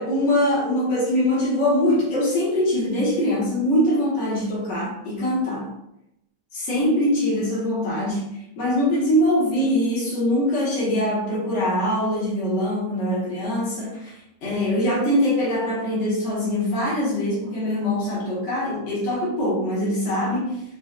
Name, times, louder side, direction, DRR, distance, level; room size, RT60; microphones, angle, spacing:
voice 1, 0.0-5.7 6.5-20.6, left 1 dB, 55° left, -7 dB, 1.4 m, -23 dB
4.3 x 2.3 x 2.4 m, 0.84 s
omnidirectional pair, 1.6 m